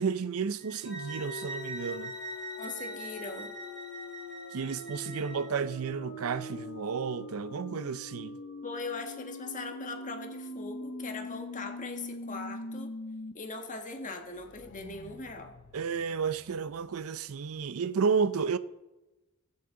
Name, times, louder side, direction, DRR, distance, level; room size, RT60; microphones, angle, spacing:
voice 1, 0.0-2.2 4.5-8.4 15.7-18.6, right 6 dB, 80° right, 0.5 m, -32 dB
sound 1, 0.6-5.5, right 2 dB, 5° right, 4.7 m, -43 dB
sound 2, 0.8-13.3 13.7-13.8 14.1-16.8, left 2 dB, 60° left, 0.8 m, -43 dB
voice 2, 2.6-3.5 8.6-12.9 13.3-15.5, left 3 dB, 40° left, 1.5 m, -40 dB
21.5 x 7.5 x 3.8 m
head